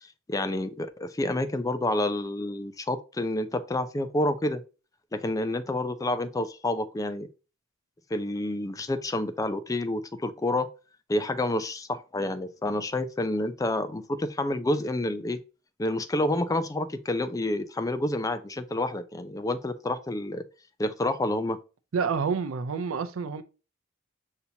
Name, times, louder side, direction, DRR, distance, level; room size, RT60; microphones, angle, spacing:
voice 1, 0.0-4.6 5.1-7.3 8.1-10.7 11.1-15.4 15.8-20.4 20.8-21.6, left 1 dB, 15° left, 0.4 m, -29 dB
voice 2, 21.9-23.4, right 5 dB, 85° right, 0.5 m, -28 dB
5.8 x 2.8 x 2.7 m
head